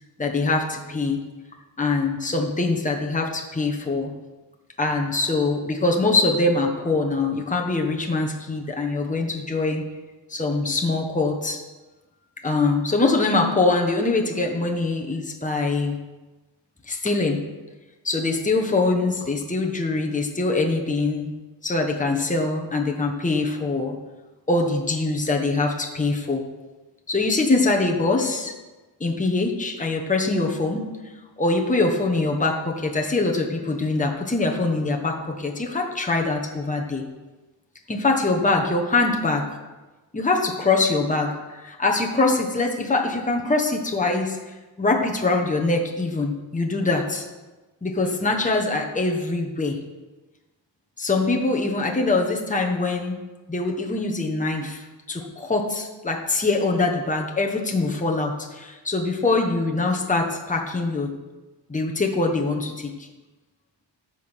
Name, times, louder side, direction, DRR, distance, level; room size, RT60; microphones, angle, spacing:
voice 1, 0.2-1.2 1.8-4.1 4.8-9.8 10.3-11.6 12.4-16.0 16.9-17.4 18.0-21.3 21.6-23.9 24.5-26.4 27.1-28.5 29.0-30.9 31.4-37.0 37.9-39.6 40.1-47.3 47.8-49.8 51.0-53.2 53.5-61.1 61.7-63.1, left 3 dB, 15° left, 1 dB, 1.3 m, -23 dB
14.0 x 6.0 x 6.4 m, 1.2 s
wide cardioid pair, 115°, 44 cm